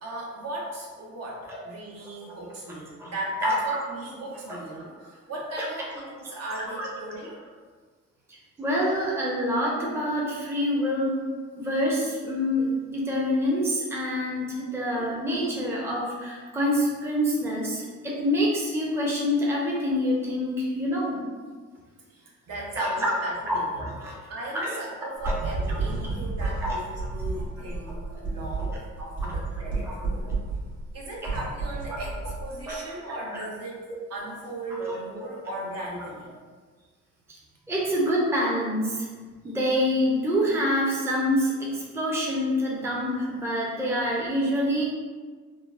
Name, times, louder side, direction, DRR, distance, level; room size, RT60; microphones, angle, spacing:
voice 1, 0.0-7.3 15.0-15.2 22.1-30.3 30.9-33.8 34.1-36.3, right 1 dB, 55° right, -3 dB, 0.8 m, -37 dB
voice 2, 8.6-11.3 11.6-21.2 22.8-23.1 23.5-24.2 24.5-24.8 25.2-25.3 25.7-25.8 26.4-26.8 28.7-28.8 29.2-29.3 29.8-29.9 32.7-32.8 33.3-33.4 34.8-35.0 37.7-39.1 39.4-44.8, equal, 10° right, -4 dB, 0.6 m, -26 dB
sound 1, 25.2-32.8, right 3 dB, 75° right, 1.3 m, -31 dB
3.7 x 2.0 x 2.4 m, 1.5 s
cardioid pair, 90°, 30 cm